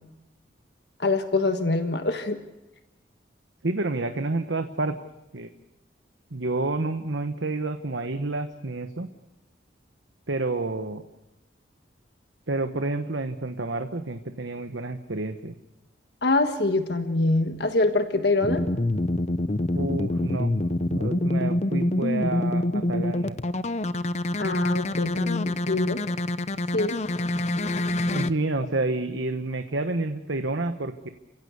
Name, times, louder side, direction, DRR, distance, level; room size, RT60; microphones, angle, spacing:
voice 1, 1.0-2.4 16.2-18.6 24.4-26.0 26.7-27.0, left 2 dB, 60° left, 7 dB, 1.5 m, -24 dB
voice 2, 3.6-5.0 5.3-5.5 6.3-9.1 10.3-11.0 12.5-15.5 19.7-20.5 20.9-23.4 28.1-31.1, right 2 dB, 80° right, 7 dB, 1.2 m, -29 dB
sound 1, 18.4-28.3, left 1 dB, 35° left, 0.7 m, -26 dB
30.0 x 16.0 x 8.3 m, 1.0 s
head